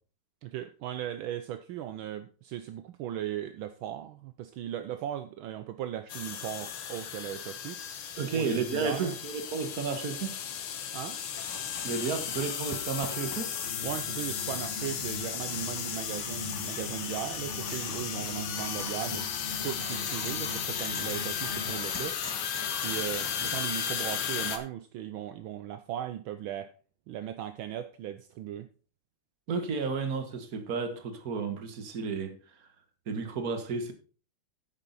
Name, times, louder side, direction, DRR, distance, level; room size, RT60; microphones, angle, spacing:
voice 1, 0.4-7.8 8.2-9.2 10.9-11.2 13.8-19.3 19.6-22.2 22.8-26.7 27.1-28.7, right 11 dB, 75° right, 1.4 m, -37 dB
sound 1, 6.1-24.6, left 8 dB, 80° left, 2.0 m, -35 dB
voice 2, 8.2-10.4 11.8-13.5 29.5-32.4 33.1-33.9, right 4 dB, 45° right, 1.7 m, -32 dB
sound 2, 11.4-23.7, left 1 dB, 10° left, 1.3 m, -46 dB
sound 3, 13.6-21.8, left 3 dB, 30° left, 1.5 m, -42 dB
10.0 x 8.1 x 4.1 m
omnidirectional pair, 2.4 m